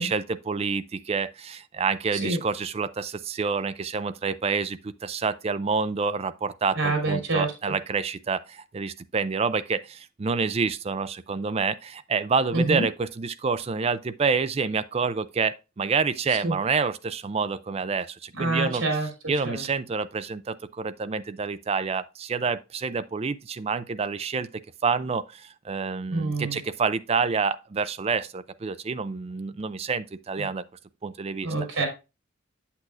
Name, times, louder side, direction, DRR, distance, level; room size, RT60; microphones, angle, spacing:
voice 1, 0.0-18.8 19.3-30.6 31.0-31.5, right 5 dB, 30° right, 0.4 m, -28 dB
voice 2, 6.8-7.7 12.5-12.8 16.4-16.5 18.4-19.1 19.4-19.6 26.1-26.6 30.4-30.5 31.4-31.9, right 2 dB, 90° right, 2.8 m, -26 dB
8.3 x 7.7 x 2.4 m
head